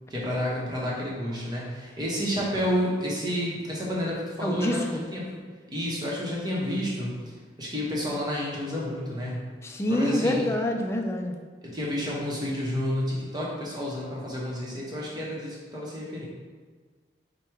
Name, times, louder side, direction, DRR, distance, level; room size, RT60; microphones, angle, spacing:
voice 1, 0.1-5.4 5.7-7.2 7.6-9.4 9.9-10.4 11.6-16.2, equal, 25° right, -5 dB, 0.9 m, -30 dB
voice 2, 4.4-5.0 9.6-11.3, left 1 dB, 15° left, 2 dB, 0.3 m, -26 dB
4.8 x 2.2 x 4.5 m, 1.5 s
head